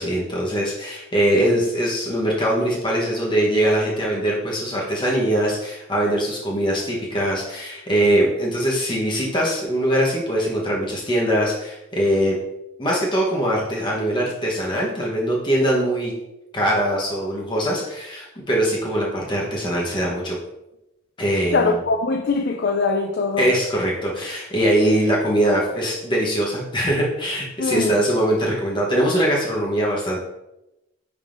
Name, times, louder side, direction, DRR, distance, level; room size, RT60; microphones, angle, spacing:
voice 1, 0.0-12.4 12.8-16.1 16.5-20.4 21.2-21.8 23.4-30.2, right 1 dB, 25° left, -4 dB, 1.0 m, -22 dB
voice 2, 21.5-23.5 27.6-28.0, left 4 dB, 50° left, 3 dB, 0.4 m, -22 dB
10.5 x 3.6 x 2.6 m, 0.92 s
head